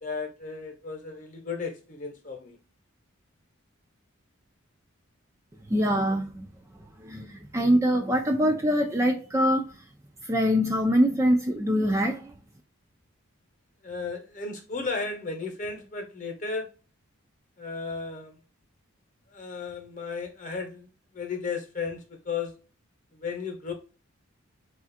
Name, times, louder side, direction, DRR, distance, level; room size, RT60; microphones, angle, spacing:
voice 1, 0.0-2.6 13.8-16.7 17.6-18.4 19.3-20.9 21.1-22.5 23.1-23.7, left 4 dB, 35° left, 0.9 m, -34 dB
voice 2, 5.7-6.5 7.0-9.7 10.2-12.3, equal, 15° right, 0.3 m, -24 dB
4.1 x 2.4 x 2.5 m
head